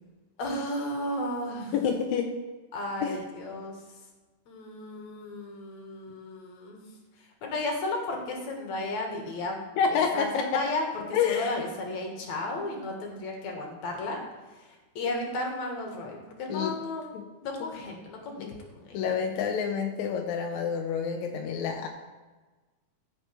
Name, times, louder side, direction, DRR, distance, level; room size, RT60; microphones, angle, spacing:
voice 1, 0.4-1.7 2.7-3.8 4.5-6.9 7.4-9.7 10.1-14.2 15.0-17.0 17.4-18.5 18.7-19.1, left 2 dB, 60° left, 1 dB, 2.6 m, -34 dB
voice 2, 1.7-2.3 3.0-3.2 9.8-10.6 11.1-11.6 16.5-16.8 17.1-17.3 18.4-18.6 18.9-21.9, left 6 dB, 75° left, 3 dB, 1.8 m, -28 dB
15.5 x 5.8 x 3.3 m, 1.3 s
omnidirectional pair, 4.0 m